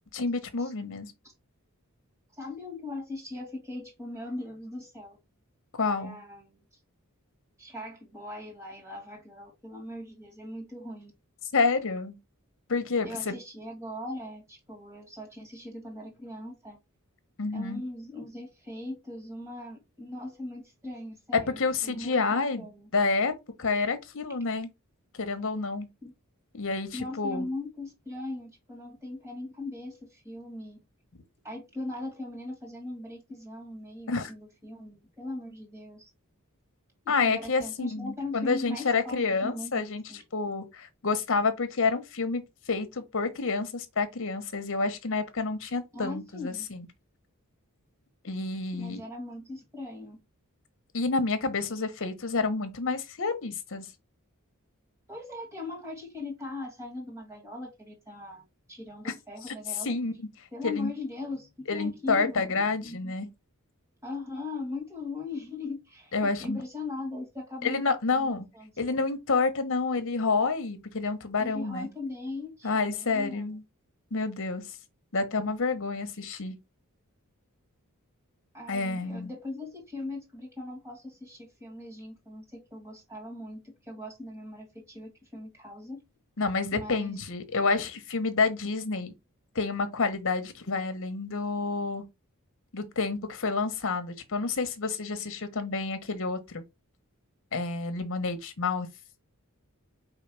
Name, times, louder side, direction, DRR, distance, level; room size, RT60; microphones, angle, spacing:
voice 1, 0.1-1.1 5.7-6.2 11.5-12.2 12.7-13.3 17.4-17.8 21.3-23.3 23.6-24.7 25.1-25.9 26.5-27.5 34.1-34.3 37.1-40.0 40.3-46.9 48.2-49.0 50.9-53.9 59.0-59.1 59.8-60.1 60.6-60.9 61.7-63.3 66.1-66.6 67.6-68.5 68.8-71.9 72.6-73.6 74.1-74.6 75.1-76.6 78.7-79.3 86.4-89.1 89.5-92.0 92.7-96.6 97.5-98.9, left 4 dB, 60° left, 1.0 m, -29 dB
voice 2, 2.4-5.2 5.8-6.6 7.6-11.1 13.0-16.8 17.5-22.3 22.5-22.9 26.0-26.1 26.9-30.8 31.4-36.1 37.0-40.2 45.9-46.7 48.7-50.2 55.1-58.4 58.7-59.9 60.5-63.2 64.0-69.0 71.4-73.4 78.5-86.0 86.7-87.2, left 2 dB, 15° right, 2.1 m, -39 dB
4.9 x 3.1 x 3.3 m
head